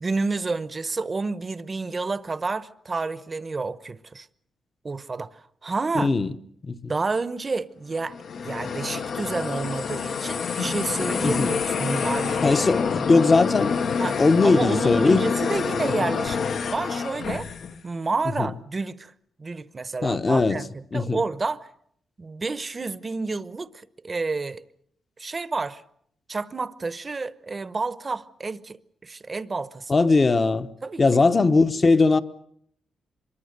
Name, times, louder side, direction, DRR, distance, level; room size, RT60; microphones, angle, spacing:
voice 1, 0.0-4.3 4.8-6.1 6.9-8.2 8.4-12.6 13.0-13.1 14.0-17.5 17.8-19.1 19.4-21.7 22.2-24.6 25.2-25.8 26.3-28.8 29.0-29.9 30.8-31.0, right 3 dB, 30° right, 0.9 m, -30 dB
voice 2, 5.9-6.3 6.6-6.8 11.2-11.5 12.4-13.8 14.2-15.2 18.2-18.5 20.0-20.6 20.9-21.2 29.9-30.7 31.0-32.2, left 3 dB, 30° left, 1.0 m, -20 dB
sound 1, 8.0-17.8, left 6 dB, 65° left, 1.1 m, -27 dB
25.0 x 23.0 x 6.7 m
cardioid pair, 115°, 0 cm